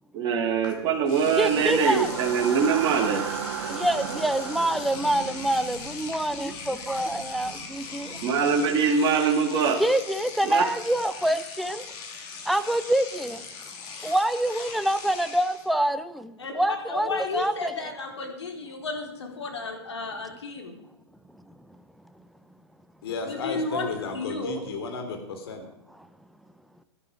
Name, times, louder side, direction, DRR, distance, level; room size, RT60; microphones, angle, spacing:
voice 1, 0.1-3.2 8.2-9.8 10.4-10.6, right 6 dB, 30° right, -2 dB, 2.9 m, -23 dB
Engine / Domestic sounds home sounds, 0.6-0.7 1.0-15.7, left 5 dB, 40° left, 3.0 m, -40 dB
sound 1, 1.2-9.2, right 7 dB, 65° right, 2.5 m, -36 dB
voice 2, 1.4-2.1 3.7-8.2 9.8-11.8 12.5-13.4 14.0-17.9, right 1 dB, ahead, 10 dB, 0.5 m, -26 dB
voice 3, 16.4-20.7 23.2-24.6, left 4 dB, 90° left, 2 dB, 4.3 m, -33 dB
voice 4, 23.0-25.6, left 3 dB, 65° left, 5 dB, 3.6 m, -34 dB
16.5 x 11.5 x 5.0 m, 0.89 s
hypercardioid pair, 135°, 14 cm